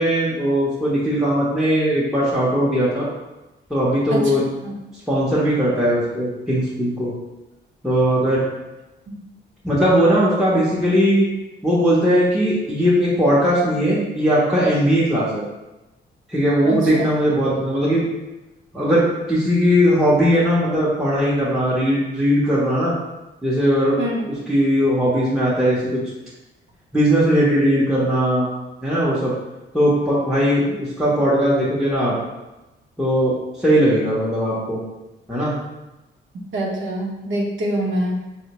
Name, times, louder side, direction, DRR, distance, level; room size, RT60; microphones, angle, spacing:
voice 1, 0.0-3.1 3.7-4.4 5.1-7.1 7.8-8.4 9.6-11.3 11.6-15.4 16.3-18.0 18.7-22.9 23.4-24.0 24.5-26.0 26.9-28.5 28.8-29.3 29.7-32.1 33.0-34.8 35.3-35.5, equal, ahead, -8 dB, 0.7 m, -19 dB
voice 2, 36.5-38.1, right 1 dB, 70° right, -1 dB, 0.8 m, -24 dB
4.2 x 2.1 x 2.9 m, 1.0 s
cardioid pair, 90°, 21 cm